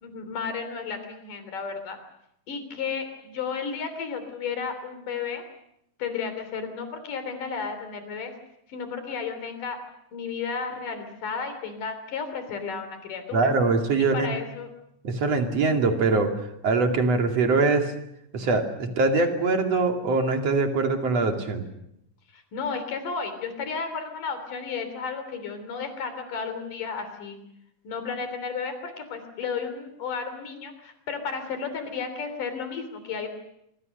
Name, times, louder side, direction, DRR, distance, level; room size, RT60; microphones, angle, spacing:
voice 1, 0.0-2.0 2.5-5.4 6.0-8.3 8.7-9.8 10.1-13.5 14.0-14.7 22.3-27.4 27.8-33.3, left 5 dB, 75° left, 9 dB, 4.9 m, -33 dB
voice 2, 13.3-14.3 15.0-16.3 16.6-17.9 18.3-21.6, right 3 dB, 50° right, 4 dB, 3.4 m, -23 dB
25.5 x 25.0 x 6.7 m, 0.77 s
omnidirectional pair, 3.7 m